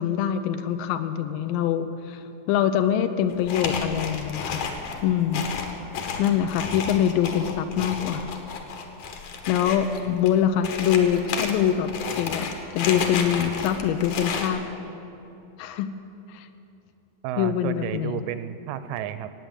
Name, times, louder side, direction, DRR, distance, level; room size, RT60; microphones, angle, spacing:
voice 1, 0.0-4.7 5.0-5.4 6.2-8.3 9.5-11.9 12.2-14.6 15.6-15.9 16.3-16.5 17.4-18.2, left 9 dB, 85° left, 9 dB, 2.3 m, -24 dB
sound 1, 3.3-14.5, left 5 dB, 65° left, 2.5 m, -32 dB
voice 2, 17.2-19.3, right 10 dB, 80° right, 12 dB, 2.1 m, -32 dB
16.0 x 9.0 x 8.0 m, 2.9 s
omnidirectional pair, 4.0 m